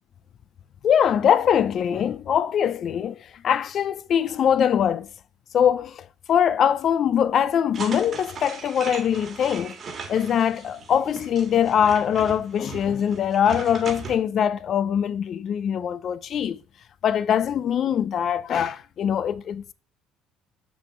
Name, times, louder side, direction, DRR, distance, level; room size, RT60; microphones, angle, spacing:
voice 1, 0.8-5.1 5.5-9.8 10.1-16.6 17.0-19.7, left 8 dB, 45° left, 0.3 m, -22 dB
sound 1, 7.7-14.2, right 5 dB, 35° right, 1.4 m, -38 dB
6.1 x 6.0 x 3.2 m
cardioid pair, 130°, 0 cm